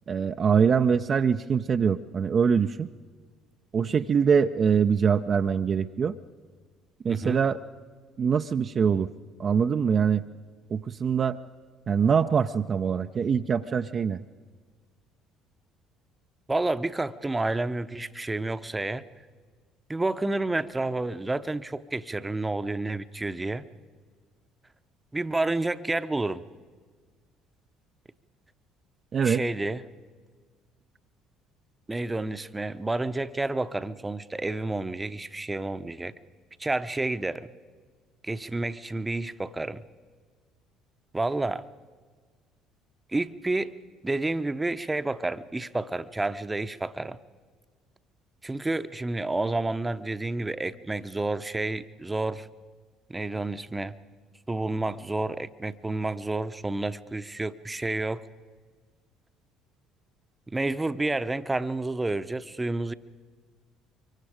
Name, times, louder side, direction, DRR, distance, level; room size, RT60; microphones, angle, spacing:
voice 1, 0.1-2.9 3.7-6.1 7.0-7.6 8.2-9.1 9.4-10.2 10.7-11.4 11.9-14.2 29.1-29.4, right 6 dB, 40° right, 6 dB, 0.6 m, -23 dB
voice 2, 7.1-7.4 16.5-19.0 19.9-23.7 25.1-26.4 29.2-29.8 31.9-36.1 36.6-37.5 38.2-39.8 41.1-41.6 43.1-43.7 44.0-47.2 48.4-52.5 53.1-53.9 54.5-58.3 60.5-62.9, right 2 dB, 15° right, 12 dB, 0.9 m, -30 dB
24.5 x 23.5 x 5.0 m, 1.5 s
hypercardioid pair, 55°, 0 cm